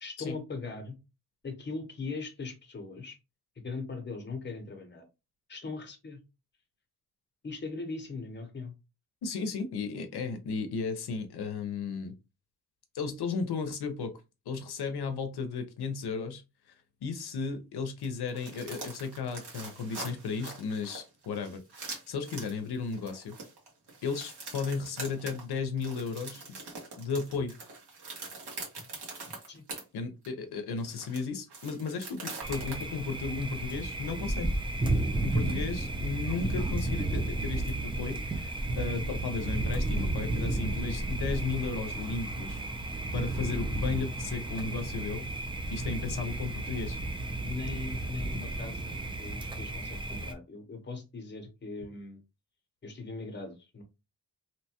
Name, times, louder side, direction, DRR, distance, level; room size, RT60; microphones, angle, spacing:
voice 1, 0.0-1.0 1.4-3.2 3.6-5.0 5.5-6.2 7.4-8.7 29.5-29.6 47.4-52.2 52.8-53.8, left 3 dB, 30° left, 0.7 m, -40 dB
voice 2, 9.2-12.1 12.9-16.4 16.7-16.8 17.0-23.4 24.0-26.4 27.0-27.6 29.9-34.5 35.2-42.6 43.1-45.3 45.7-47.0, left 5 dB, 80° left, 0.6 m, -34 dB
sound 1, 18.0-29.8 30.2-30.3 30.8-32.8, right 3 dB, 85° right, 1.2 m, -43 dB
Thunder, 32.4-50.3, right 2 dB, 15° right, 0.3 m, -33 dB
2.8 x 2.2 x 2.8 m
wide cardioid pair, 140°, 38 cm